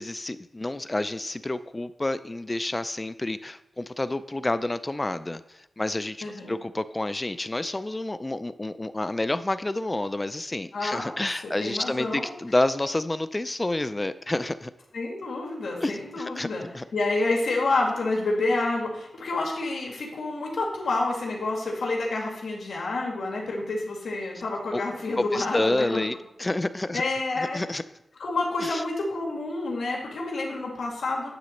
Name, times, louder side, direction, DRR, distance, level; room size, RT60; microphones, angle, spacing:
voice 1, 0.0-5.4 5.8-6.2 6.5-14.7 15.8-16.5 16.7-16.8 24.7-24.8 25.2-27.0 27.4-27.8 28.6-28.8, left 2 dB, 20° left, 13 dB, 0.4 m, -29 dB
voice 2, 6.2-6.6 10.7-11.1 11.4-12.3 14.9-16.6 16.9-26.1 26.9-27.6 28.2-31.3, left 2 dB, 85° left, -1 dB, 2.1 m, -28 dB
9.8 x 4.0 x 6.4 m, 0.89 s
wide cardioid pair, 90°, 0 cm